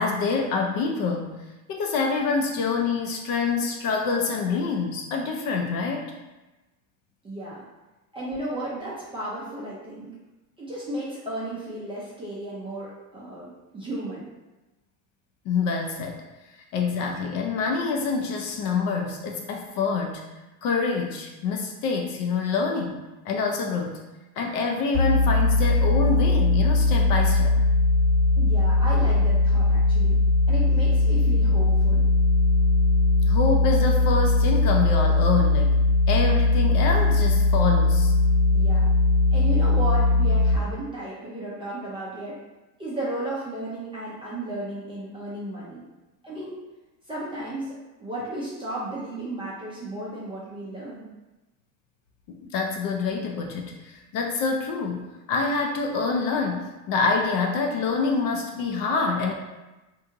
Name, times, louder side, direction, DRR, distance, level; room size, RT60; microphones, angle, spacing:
voice 1, 0.0-6.1 15.5-16.2 16.7-20.2 20.6-24.0 24.4-27.6 33.3-35.7 36.1-38.1 52.3-59.3, left 4 dB, 45° left, 2 dB, 0.4 m, -26 dB
voice 2, 7.2-7.6 8.1-10.1 10.6-14.3 28.4-30.2 30.5-32.1 38.5-38.9 39.3-42.4 42.8-45.8 46.2-46.6 47.1-51.1, right 1 dB, 10° right, -7 dB, 0.4 m, -34 dB
sound 1, 24.9-40.6, left 3 dB, 60° left, 1.3 m, -20 dB
2.7 x 2.6 x 2.5 m, 1.1 s
supercardioid pair, 110°, 49 cm